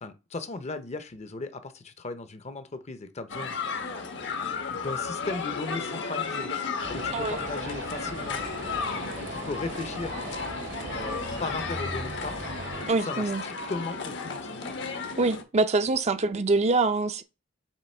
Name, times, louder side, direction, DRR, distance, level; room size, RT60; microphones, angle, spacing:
voice 1, 0.0-3.6 4.7-6.5 6.9-8.5 9.2-10.2 10.9-12.4 13.0-14.7, left 3 dB, 35° left, 0.6 m, -37 dB
sound 1, 3.3-15.4, left 5 dB, 70° left, 1.0 m, -34 dB
sound 2, 6.8-12.9, right 2 dB, 85° right, 1.8 m, -38 dB
voice 2, 12.9-13.4 15.2-17.2, right 3 dB, 35° right, 0.5 m, -24 dB
7.5 x 3.0 x 4.2 m
head